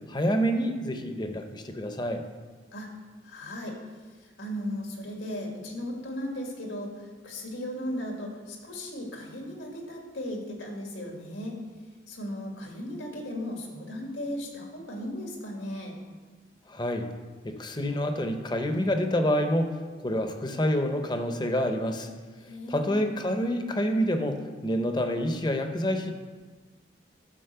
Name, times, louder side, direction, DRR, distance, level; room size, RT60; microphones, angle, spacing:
voice 1, 0.1-2.2 16.7-17.1 17.4-19.8 20.0-22.1 22.7-26.1, equal, 25° left, 6 dB, 0.7 m, -27 dB
voice 2, 3.2-3.8 4.2-11.6 12.1-16.0 22.5-22.9, left 1 dB, 85° left, 0 dB, 2.2 m, -36 dB
11.5 x 5.2 x 6.8 m, 1.4 s
head